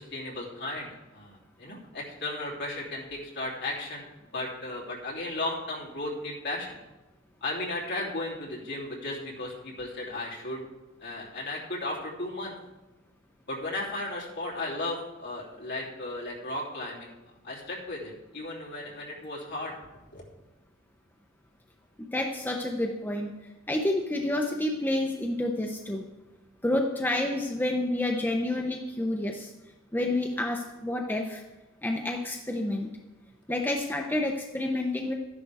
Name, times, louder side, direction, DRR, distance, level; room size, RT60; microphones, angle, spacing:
voice 1, 0.0-6.8 7.4-10.6 11.0-12.5 13.5-17.1 17.4-19.7 20.1-20.2, left 2 dB, 55° left, -4 dB, 3.1 m, -35 dB
voice 2, 22.0-23.3 23.7-26.1 26.6-29.5 29.9-31.4 31.8-32.9 33.5-35.1, left 1 dB, 10° left, 2 dB, 0.7 m, -29 dB
13.0 x 10.5 x 3.5 m, 1.1 s
head